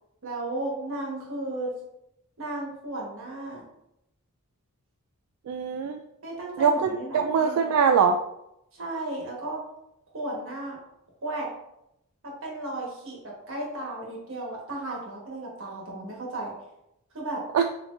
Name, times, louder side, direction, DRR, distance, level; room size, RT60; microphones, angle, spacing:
voice 1, 0.2-1.7 2.4-3.6 6.2-7.6 8.7-9.6 10.1-10.8 11.2-11.5 12.2-16.5 17.1-17.4, right 2 dB, 60° right, -2 dB, 1.4 m, -34 dB
voice 2, 5.5-6.0 6.6-8.2 17.5-17.6, right 6 dB, 85° right, 7 dB, 0.3 m, -22 dB
5.8 x 2.8 x 2.6 m, 0.83 s
head